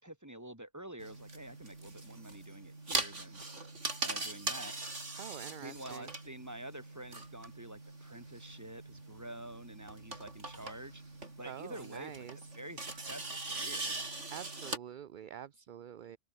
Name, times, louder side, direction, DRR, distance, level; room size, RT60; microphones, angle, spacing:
voice 1, 0.0-3.4 4.0-4.7 5.6-11.0 11.4-14.0, right 1 dB, 15° right, 3.1 m, -48 dB
sound 1, 1.0-14.8, right 2 dB, 80° right, 4.5 m, -41 dB
voice 2, 5.2-6.1 11.5-12.4 14.3-16.2, right 9 dB, 50° right, 0.6 m, -46 dB
open air
omnidirectional pair, 1.2 m